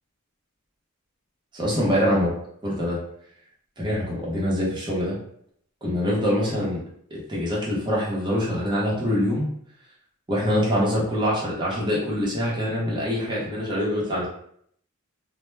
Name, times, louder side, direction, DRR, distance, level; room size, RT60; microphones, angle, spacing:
voice 1, 1.5-2.3 2.6-3.0 3.8-5.2 5.8-6.8 7.1-9.5 10.3-14.3, equal, 20° right, -5 dB, 0.7 m, -24 dB
2.1 x 2.1 x 3.1 m, 0.66 s
head